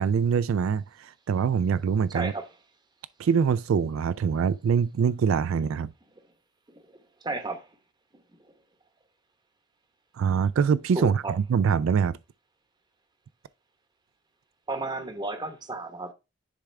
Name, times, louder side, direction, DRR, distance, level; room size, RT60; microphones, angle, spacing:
voice 1, 0.0-2.3 3.2-5.9 10.2-12.2, right 6 dB, 80° right, 0.3 m, -24 dB
voice 2, 7.2-7.6 11.0-11.3 14.7-16.1, right 2 dB, 20° right, 0.9 m, -32 dB
10.0 x 3.6 x 3.2 m
head